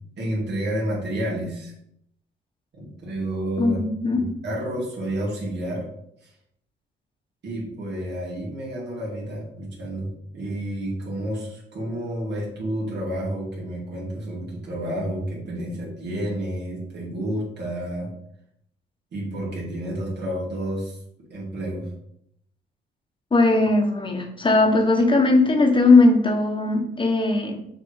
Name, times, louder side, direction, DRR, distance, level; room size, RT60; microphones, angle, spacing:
voice 1, 0.2-1.7 2.7-3.8 4.1-5.9 6.2-6.3 7.4-18.1 19.1-21.0 21.3-21.9, right 1 dB, 60° right, -4 dB, 2.2 m, -30 dB
voice 2, 3.6-4.2 23.3-27.6, left 2 dB, 25° left, 2 dB, 1.4 m, -18 dB
6.4 x 3.1 x 4.8 m, 0.74 s
cardioid pair, 90°, 20 cm